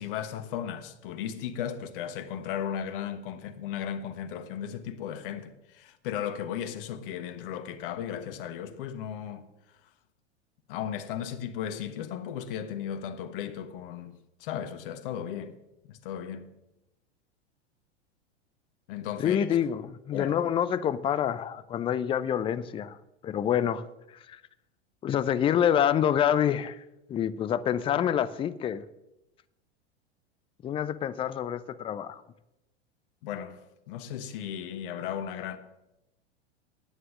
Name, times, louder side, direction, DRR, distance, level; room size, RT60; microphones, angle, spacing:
voice 1, 0.0-9.8 10.7-15.5 15.8-16.5 18.9-19.6 20.1-20.3 33.2-33.6 33.9-35.6, left 9 dB, 50° left, 1.2 m, -36 dB
voice 2, 19.2-23.0 23.2-23.9 24.3-24.4 25.0-26.8 27.1-28.8 30.6-32.2, left 9 dB, 15° left, 0.5 m, -27 dB
11.0 x 9.4 x 6.6 m
figure-of-eight pair, 90°, 33 cm